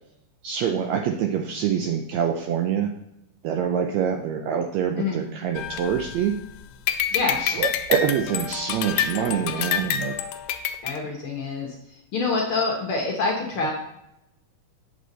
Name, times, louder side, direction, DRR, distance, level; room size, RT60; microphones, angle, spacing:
voice 1, 0.4-2.9 3.4-6.4 7.4-10.1, right 8 dB, 80° right, 4 dB, 1.6 m, -25 dB
sound 1, 5.6-6.5 6.9-10.9, left 9 dB, 80° left, 2.1 m, -27 dB
voice 2, 7.1-7.4 10.8-11.7 12.1-13.7, left 3 dB, 60° left, 0 dB, 1.5 m, -26 dB
8.8 x 6.7 x 4.0 m, 0.85 s
omnidirectional pair, 3.7 m